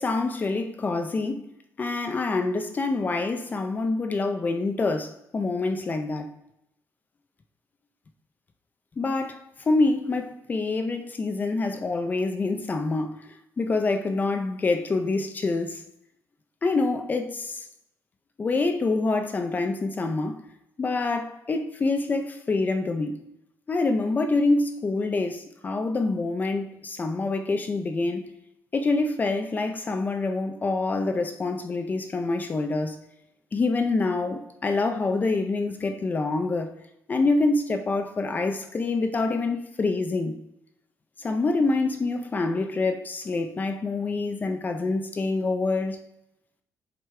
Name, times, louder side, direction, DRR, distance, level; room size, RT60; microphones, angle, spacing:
voice 1, 0.0-1.4 1.8-6.3 9.0-13.2 13.6-15.8 16.6-17.6 18.4-20.4 20.8-23.2 23.7-28.3 28.7-33.0 33.5-36.7 37.1-40.3 41.2-46.0, left 3 dB, 30° left, 0.5 m, -26 dB
7.8 x 5.2 x 3.3 m
cardioid pair, 145°, 6 cm